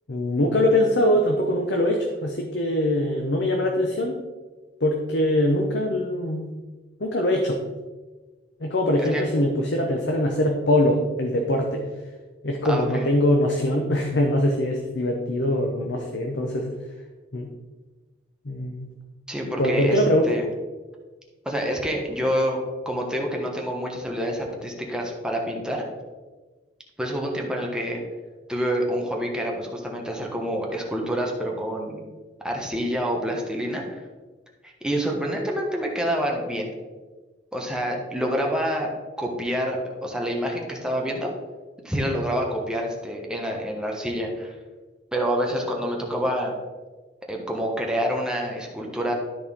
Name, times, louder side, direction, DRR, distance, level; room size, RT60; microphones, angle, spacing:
voice 1, 0.1-4.2 4.8-6.5 7.0-7.6 8.6-11.8 12.4-16.7 17.3-17.5 18.4-18.9 19.6-20.4, left 1 dB, 65° left, 2 dB, 0.8 m, -22 dB
voice 2, 12.6-13.1 19.3-20.4 21.4-25.9 27.0-28.0 28.5-32.0 32.4-34.0 34.6-36.7 37.5-38.9 39.2-41.3 41.8-44.5 45.1-46.5 47.3-49.1, equal, 5° right, -1 dB, 1.2 m, -27 dB
12.5 x 4.3 x 3.6 m, 1.3 s
head